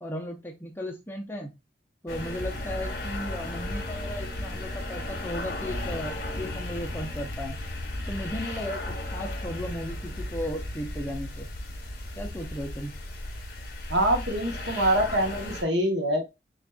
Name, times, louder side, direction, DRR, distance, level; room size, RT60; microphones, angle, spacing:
voice 1, 0.0-1.5 2.0-7.6 8.1-8.8 9.1-11.5 12.2-12.9, equal, 10° left, 1 dB, 0.7 m, -35 dB
sound 1, 2.1-15.6, left 1 dB, 55° left, 1.0 m, -35 dB
voice 2, 13.9-16.2, right 1 dB, 85° right, 3 dB, 1.0 m, -25 dB
6.4 x 2.5 x 2.3 m, 0.24 s
head